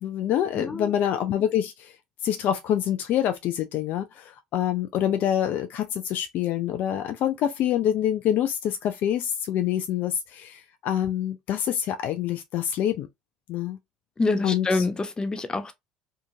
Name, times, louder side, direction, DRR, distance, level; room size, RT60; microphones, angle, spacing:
voice 1, 0.0-1.9 2.2-13.1 13.5-13.8 14.4-14.9, left 10 dB, 55° left, 0.4 m, -26 dB
voice 2, 0.6-0.9 14.2-15.7, left 3 dB, 25° left, 0.7 m, -26 dB
2.7 x 2.4 x 2.7 m
hypercardioid pair, 70°, 4 cm